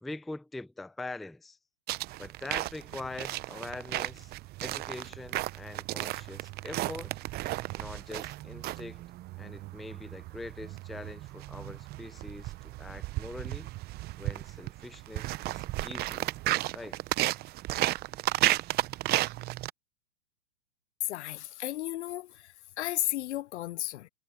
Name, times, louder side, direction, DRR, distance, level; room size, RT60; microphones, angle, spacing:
voice 1, 0.0-1.6 2.2-4.3 4.6-7.1 7.8-9.1 9.4-13.7 14.2-16.3 16.7-17.0, left 2 dB, ahead, 0.5 m, -43 dB
sound 1, 1.9-19.7, right 17 dB, 25° right, 0.8 m, -34 dB
voice 2, 21.0-24.1, left 14 dB, 55° left, 0.5 m, -34 dB
hypercardioid pair, 120°, 43 cm